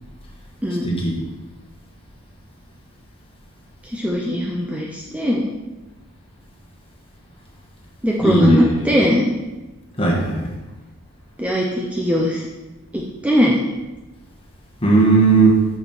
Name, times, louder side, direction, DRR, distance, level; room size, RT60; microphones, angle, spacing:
voice 1, 0.8-1.2 8.2-8.9 10.0-10.5 14.8-15.6, right 3 dB, 25° left, -1 dB, 1.4 m, -16 dB
voice 2, 3.8-5.5 8.0-9.3 11.4-12.5 12.9-13.6, equal, 5° right, -2 dB, 0.6 m, -20 dB
7.0 x 6.3 x 4.3 m, 1.1 s
head